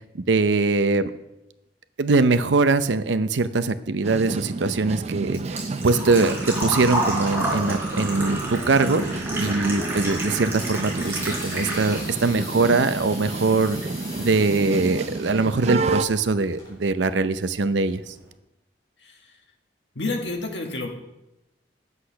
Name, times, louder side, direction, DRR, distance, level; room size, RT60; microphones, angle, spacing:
voice 1, 0.1-1.1 2.0-9.0 9.4-13.8 14.2-18.1, right 3 dB, 85° right, 12 dB, 0.6 m, -22 dB
sound 1, 4.0-16.1, right 3 dB, 35° right, 0.5 m, -31 dB
Engine / Trickle dribble / Fill (with liquid), 4.4-12.3 12.7-13.6 13.9-14.0 15.9-16.0 16.2-16.6 16.9-17.0 17.3-17.4, right 1 dB, 15° right, 3.7 m, -30 dB
sound 2, 10.9-15.9 16.5-16.7, left 1 dB, 20° left, 4.1 m, -40 dB
voice 2, 19.0-19.4 20.0-20.9, left 2 dB, 75° left, 2 dB, 1.7 m, -30 dB
10.0 x 8.2 x 5.7 m, 0.93 s
head